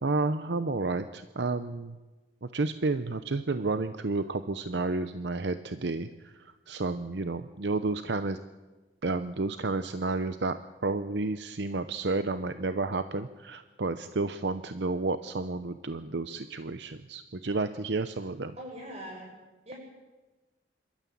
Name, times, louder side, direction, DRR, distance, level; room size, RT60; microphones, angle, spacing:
voice 1, 0.0-2.0 2.4-8.4 9.0-10.6 10.8-18.5, right 3 dB, 70° right, 11 dB, 0.7 m, -31 dB
voice 2, 18.6-19.3 19.7-19.8, right 1 dB, 35° right, 0 dB, 7.8 m, -41 dB
26.5 x 13.0 x 8.5 m, 1.2 s
head